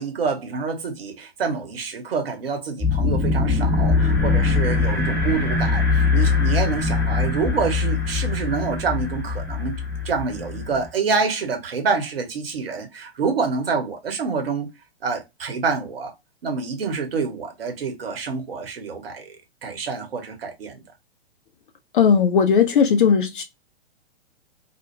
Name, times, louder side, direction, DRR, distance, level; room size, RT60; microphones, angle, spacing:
voice 1, 0.0-9.8 10.0-14.7 15.0-16.1 16.4-19.4 19.6-20.8, right 5 dB, 65° right, 1.0 m, -27 dB
sound 1, 2.8-10.9, left 4 dB, 5° left, 0.7 m, -22 dB
voice 2, 21.9-23.4, left 6 dB, 55° left, 0.5 m, -17 dB
2.4 x 2.1 x 3.1 m
figure-of-eight pair, 110°, 32 cm